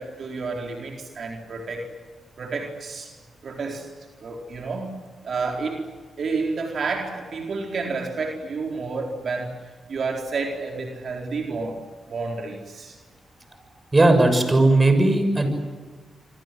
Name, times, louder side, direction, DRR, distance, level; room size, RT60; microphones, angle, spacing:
voice 1, 0.0-1.9 2.4-3.1 3.4-3.9 4.2-4.9 5.2-5.9 6.2-9.6 9.9-11.8 12.1-13.0, right 4 dB, 60° right, 2 dB, 4.3 m, -30 dB
voice 2, 13.9-15.5, right 2 dB, 25° right, 7 dB, 6.9 m, -17 dB
27.0 x 25.5 x 7.8 m, 1.4 s
cardioid pair, 75°, 0 cm